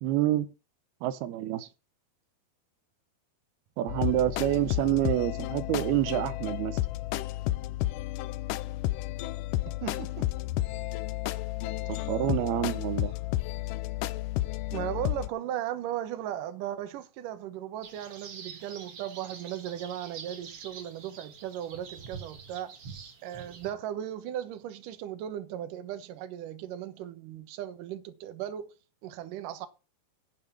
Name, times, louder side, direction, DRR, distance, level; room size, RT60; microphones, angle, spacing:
voice 1, 0.0-0.5 1.0-1.7 3.8-6.8 11.9-13.1, right 14 dB, 85° right, 2.7 m, -28 dB
sound 1, 3.9-15.3, left 16 dB, 90° left, 1.8 m, -32 dB
voice 2, 9.7-10.3 14.7-22.7 23.2-28.7 29.0-29.7, right 11 dB, 65° right, 2.5 m, -37 dB
sound 2, 17.8-23.7, right 6 dB, 45° right, 2.5 m, -46 dB
9.5 x 6.9 x 6.2 m
omnidirectional pair, 4.5 m